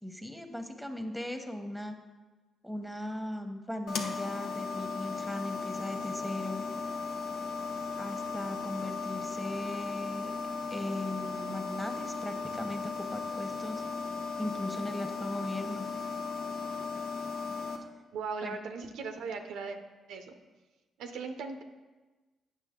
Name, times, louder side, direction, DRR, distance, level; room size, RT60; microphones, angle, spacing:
voice 1, 0.0-2.0 2.6-6.6 8.0-10.3 10.7-13.8 14.4-15.9 18.4-18.6, left 1 dB, ahead, 6 dB, 1.0 m, -38 dB
sound 1, 3.9-17.8, left 4 dB, 75° left, 0.8 m, -36 dB
voice 2, 18.1-19.8 20.1-20.3 21.0-21.6, right 5 dB, 80° right, 6 dB, 0.6 m, -38 dB
8.2 x 6.2 x 3.7 m, 1.2 s
supercardioid pair, 60°, 0 cm